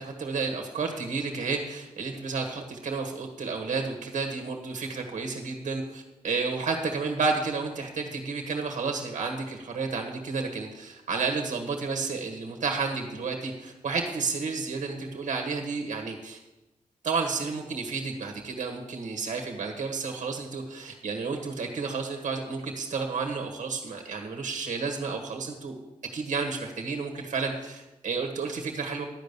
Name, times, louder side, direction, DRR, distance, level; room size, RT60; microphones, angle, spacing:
voice 1, 0.0-16.4 17.0-25.7 26.1-29.0, right 4 dB, 65° right, 3 dB, 1.8 m, -31 dB
11.5 x 5.3 x 8.3 m, 1.0 s
cardioid pair, 65°, 13 cm